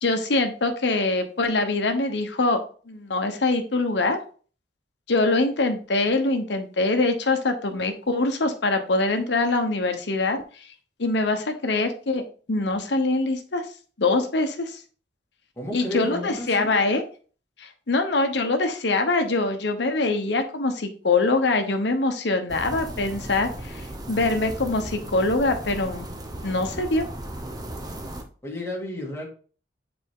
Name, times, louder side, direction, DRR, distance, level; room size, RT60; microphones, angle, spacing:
voice 1, 0.0-2.6 2.9-4.2 5.1-10.7 11.0-12.2 12.5-13.6 14.0-14.8 15.7-17.0 17.6-26.1 26.4-27.1, left 2 dB, 70° left, 6 dB, 1.0 m, -24 dB
voice 2, 15.6-16.7 28.4-29.3, left 1 dB, 15° left, -2 dB, 2.0 m, -32 dB
sound 1, 22.5-28.2, right 1 dB, 20° right, 0.8 m, -36 dB
6.9 x 4.3 x 3.6 m, 0.40 s
head